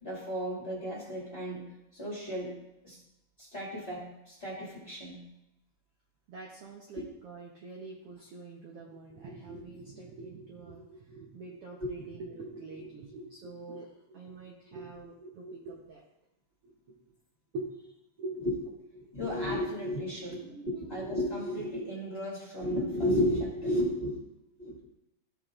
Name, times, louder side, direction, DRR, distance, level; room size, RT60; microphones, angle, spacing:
voice 1, 0.0-1.6 1.9-2.5 2.8-3.0 3.4-5.2 6.9-7.0 11.8-11.9 18.3-18.5 18.9-24.2 24.6-24.7, equal, 25° left, -6 dB, 1.6 m, -33 dB
voice 2, 6.3-16.0 16.6-16.9 17.5-17.9 18.2-18.5 20.4-20.9 24.7-24.8, right 2 dB, 85° right, -2 dB, 1.3 m, -44 dB
13.5 x 5.5 x 2.5 m, 0.89 s
omnidirectional pair, 4.0 m